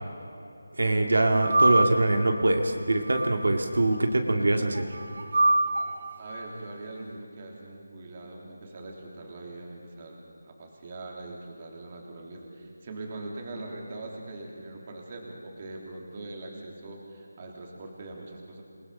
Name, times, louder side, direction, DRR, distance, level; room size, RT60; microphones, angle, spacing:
voice 1, 0.8-4.9, right 2 dB, 80° right, 3 dB, 2.2 m, -23 dB
sound 1, 1.3-2.2 2.9-3.8 4.7-6.2, right 2 dB, 60° right, 4.4 m, -25 dB
voice 2, 6.2-18.6, right 2 dB, 30° right, 0 dB, 3.1 m, -42 dB
27.5 x 20.5 x 5.6 m, 2.6 s
figure-of-eight pair, 170°, 0 cm